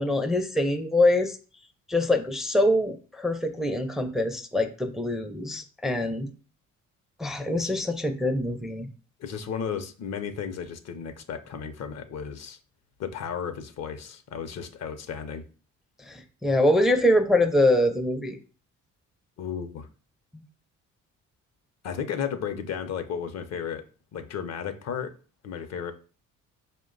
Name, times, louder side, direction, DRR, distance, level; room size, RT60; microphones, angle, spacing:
voice 1, 0.0-1.4 1.9-6.3 7.2-8.9 16.0-18.4 20.3-20.4, left 1 dB, ahead, 5 dB, 0.4 m, -24 dB
voice 2, 9.2-12.6 13.0-15.4 19.4-19.9 21.8-23.8 24.1-25.1 25.4-25.9, left 7 dB, 60° left, 9 dB, 0.6 m, -34 dB
4.5 x 2.2 x 3.7 m, 0.37 s
cardioid pair, 90°, 30 cm